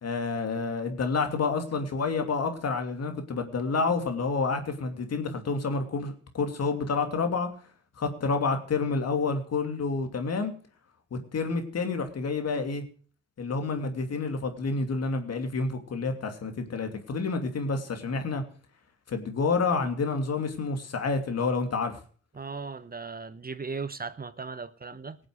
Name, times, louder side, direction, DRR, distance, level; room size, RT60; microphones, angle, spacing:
voice 1, 0.0-7.5 8.0-10.5 11.1-12.8 13.4-18.4 19.1-22.0, left 4 dB, 60° left, 2.8 m, -29 dB
voice 2, 22.3-25.2, right 4 dB, 30° right, 1.0 m, -37 dB
18.5 x 7.7 x 6.4 m
supercardioid pair, 55°, 29 cm